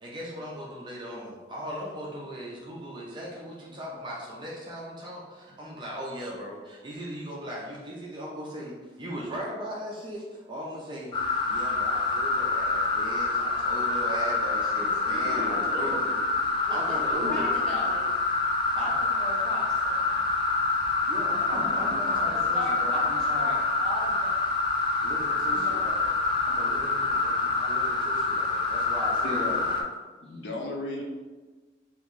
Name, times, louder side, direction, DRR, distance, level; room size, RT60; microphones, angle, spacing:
voice 1, 0.0-11.2 11.5-16.2 16.7-17.5 17.8-17.9 18.7-18.9 21.1-23.6 25.0-29.8, equal, 25° right, -4 dB, 0.5 m, -38 dB
sound 1, 11.1-29.8, left 3 dB, 25° left, 0.4 m, -26 dB
voice 2, 15.1-16.0 17.2-17.5 21.5-22.0 29.2-29.6 30.2-31.0, left 2 dB, 75° left, -1 dB, 0.5 m, -36 dB
voice 3, 16.6-18.1 18.8-20.4 22.1-22.2 22.5-24.4 25.4-26.0 30.3-30.4, equal, 5° left, -7 dB, 0.8 m, -38 dB
2.9 x 2.5 x 3.6 m, 1.3 s
head